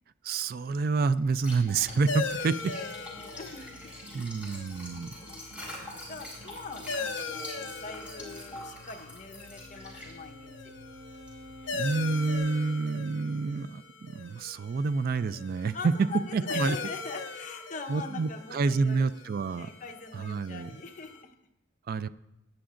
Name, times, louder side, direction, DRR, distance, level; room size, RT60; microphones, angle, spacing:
voice 1, 0.2-2.7 4.1-5.1 11.7-16.1 16.3-16.8 17.9-19.7 20.1-20.7 21.9-22.1, right 4 dB, 50° right, 14 dB, 0.3 m, -28 dB
Liquid, 1.1-12.4, left 1 dB, 5° right, 4.2 m, -45 dB
sound 1, 2.1-21.2, left 4 dB, 80° left, 0.9 m, -40 dB
voice 2, 2.6-4.0 5.7-10.7 15.7-19.1 19.5-21.4, left 4 dB, 40° left, 3 dB, 1.0 m, -43 dB
Wind instrument woodwind instrument, 9.4-13.7, equal, 65° right, 1.3 m, -50 dB
18.5 x 10.5 x 2.5 m, 0.90 s
head